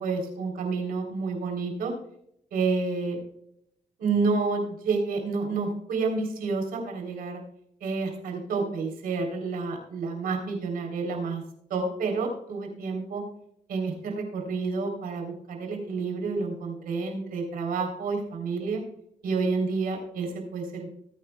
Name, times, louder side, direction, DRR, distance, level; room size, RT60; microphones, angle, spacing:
voice 1, 0.0-1.9 2.5-3.2 4.0-7.4 7.8-11.4 11.7-13.2 13.7-18.8 19.2-20.9, right 4 dB, 85° right, 1 dB, 3.7 m, -29 dB
18.5 x 9.3 x 2.3 m, 0.73 s
cardioid pair, 75°, 15 cm